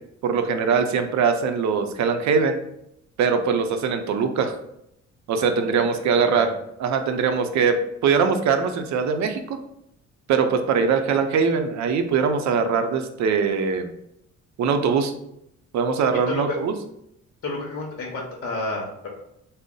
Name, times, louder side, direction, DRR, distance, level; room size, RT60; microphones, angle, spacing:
voice 1, 0.2-2.6 3.2-4.6 5.3-6.5 6.8-9.6 10.3-13.9 14.6-15.1 15.7-16.7, right 5 dB, 65° right, 7 dB, 0.6 m, -22 dB
voice 2, 5.9-6.5 16.3-16.6 17.4-19.1, left 2 dB, 50° left, -1 dB, 1.0 m, -30 dB
3.9 x 2.0 x 3.7 m, 0.79 s
cardioid pair, 90°, 30 cm